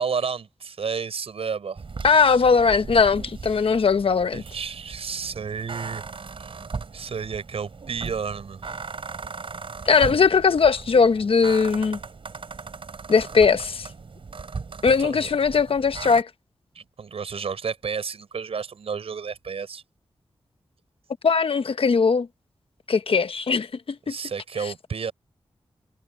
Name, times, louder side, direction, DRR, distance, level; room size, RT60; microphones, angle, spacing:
voice 1, 0.0-1.8 4.3-6.1 6.3-6.5 6.9-8.6 15.0-15.3 16.7-19.8 24.1-25.1, right 6 dB, 80° right, 5.1 m, -31 dB
sound 1, 1.8-16.2, right 4 dB, 65° right, 3.9 m, -38 dB
voice 2, 2.0-4.4 9.9-12.0 13.1-13.9 14.8-16.3 21.2-22.3 22.9-24.1, left 5 dB, 65° left, 1.2 m, -19 dB
cardioid pair, 55°, 10 cm